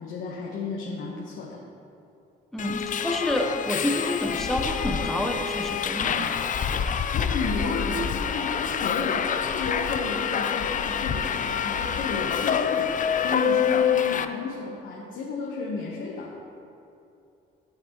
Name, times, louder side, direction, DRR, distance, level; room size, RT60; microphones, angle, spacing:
voice 1, 0.0-1.6 7.1-16.3, left 3 dB, 75° left, -3 dB, 1.1 m, -32 dB
voice 2, 2.5-6.2, left 1 dB, ahead, 2 dB, 0.9 m, -28 dB
Subway metro underground, 2.6-14.2, left 7 dB, 40° left, 0.4 m, -27 dB
13.0 x 6.0 x 3.0 m, 2.6 s
cardioid pair, 90°, 20 cm